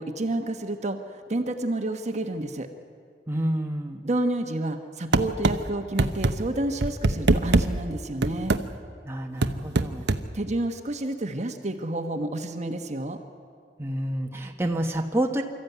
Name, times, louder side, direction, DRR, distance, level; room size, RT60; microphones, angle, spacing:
voice 1, 0.0-2.7 4.0-8.6 10.3-13.2, right 1 dB, 40° right, 6 dB, 1.3 m, -29 dB
voice 2, 3.3-4.0 9.1-10.0 13.8-15.4, right 1 dB, 15° right, 2 dB, 1.3 m, -28 dB
sound 1, 5.1-5.6 6.0-6.3 6.8-7.7 8.2-8.6 9.4-10.2, right 2 dB, 75° right, 0.9 m, -21 dB
25.0 x 14.0 x 9.4 m, 2.1 s
head